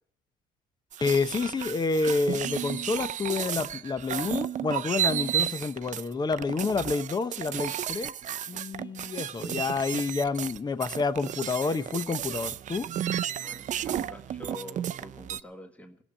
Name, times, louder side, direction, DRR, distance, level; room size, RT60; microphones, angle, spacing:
sound 1, 0.9-15.4, right 10 dB, 45° right, 0.6 m, -33 dB
voice 1, 1.0-8.1 8.5-12.9, left 4 dB, 25° left, 0.8 m, -29 dB
voice 2, 13.4-16.0, left 1 dB, 10° left, 1.7 m, -45 dB
17.0 x 7.2 x 9.9 m
cardioid pair, 110°, 17 cm